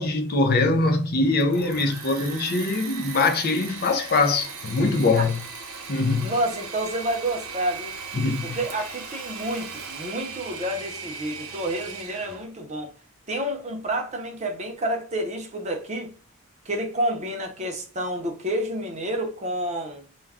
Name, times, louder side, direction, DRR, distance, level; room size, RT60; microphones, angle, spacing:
voice 1, 0.0-5.4 5.9-6.3 8.1-8.6, left 3 dB, 40° left, 0.4 m, -23 dB
Engine / Mechanisms, 1.2-12.4, right 5 dB, 75° right, 0.8 m, -38 dB
voice 2, 6.2-7.9 8.4-12.9 13.3-16.1 16.7-20.0, right 1 dB, 30° right, 0.6 m, -29 dB
2.3 x 2.2 x 3.3 m
head